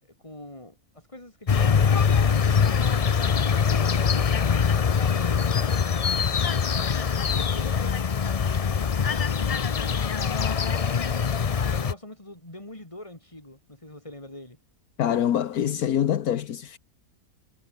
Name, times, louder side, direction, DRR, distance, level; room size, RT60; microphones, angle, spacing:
voice 1, 0.0-4.4 4.8-8.0 8.6-14.6, left 1 dB, 20° left, 4.6 m, -44 dB
sound 1, 1.5-11.9, left 6 dB, 55° left, 0.4 m, -23 dB
voice 2, 15.0-16.8, left 10 dB, 75° left, 1.4 m, -25 dB
omnidirectional pair, 1.6 m